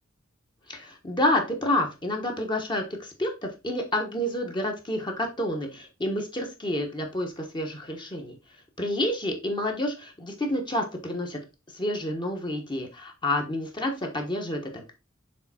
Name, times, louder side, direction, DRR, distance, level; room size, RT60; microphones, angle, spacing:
voice 1, 0.7-8.4 8.8-11.4 11.7-14.9, left 1 dB, 20° left, 2 dB, 1.3 m, -29 dB
6.8 x 3.5 x 4.2 m, 0.26 s
head